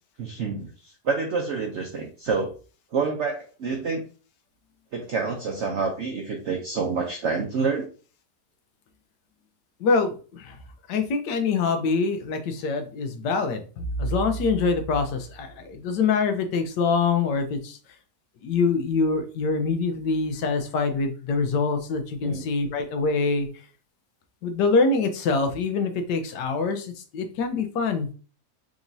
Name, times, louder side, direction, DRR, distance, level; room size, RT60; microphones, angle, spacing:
voice 1, 0.2-2.5 2.9-4.0 4.9-7.9 22.2-22.5, right 4 dB, 60° right, 2 dB, 0.7 m, -28 dB
voice 2, 9.8-10.1 10.4-10.5 10.9-17.8 18.4-23.5 24.4-28.1, left 4 dB, 85° left, 7 dB, 1.4 m, -24 dB
5.0 x 3.0 x 2.6 m, 0.38 s
omnidirectional pair, 1.8 m